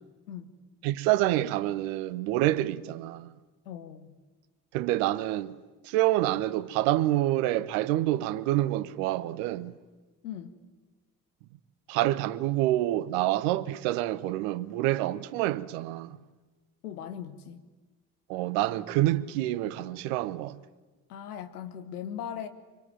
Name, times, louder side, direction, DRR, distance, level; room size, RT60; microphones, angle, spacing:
voice 1, 0.8-3.3 4.7-5.5 5.8-9.7 11.9-16.2 18.3-20.6, right 15 dB, 60° right, 1.1 m, -27 dB
voice 2, 3.6-4.2 10.2-10.5 16.8-17.6 21.1-22.5, left 9 dB, 75° left, 1.4 m, -39 dB
25.0 x 24.5 x 9.2 m
figure-of-eight pair, 50°, 46 cm